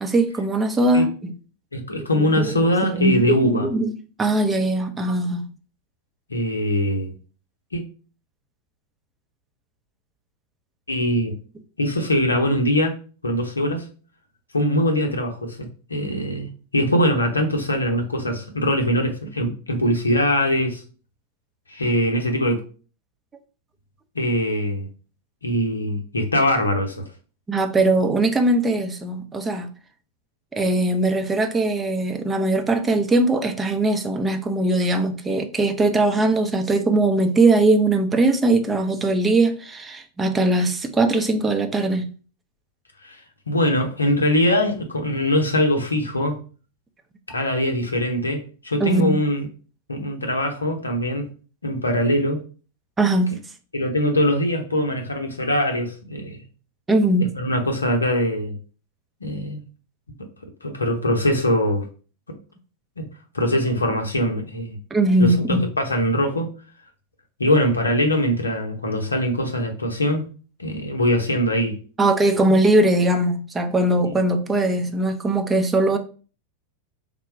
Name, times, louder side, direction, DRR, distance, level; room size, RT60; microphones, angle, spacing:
voice 1, 0.0-1.3 2.2-5.5 27.5-29.7 30.5-42.1 48.8-49.2 53.0-53.4 56.9-57.3 64.9-65.6 72.0-76.0, right 2 dB, 15° right, 0.6 m, -20 dB
voice 2, 1.7-3.7 6.3-7.1 7.7-7.8 10.9-11.3 11.8-12.9 13.2-13.9 14.5-20.8 21.7-22.6 24.1-24.9 25.4-27.0 43.0-46.4 47.3-49.5 49.9-51.2 51.6-52.4 53.7-56.4 57.3-58.5 59.2-59.6 60.6-61.9 63.0-63.1 63.3-64.8 65.2-66.5 67.4-70.3 70.6-71.8 74.0-74.1, equal, 80° left, 0.8 m, -22 dB
3.7 x 2.2 x 4.4 m
figure-of-eight pair, 90°, 0 cm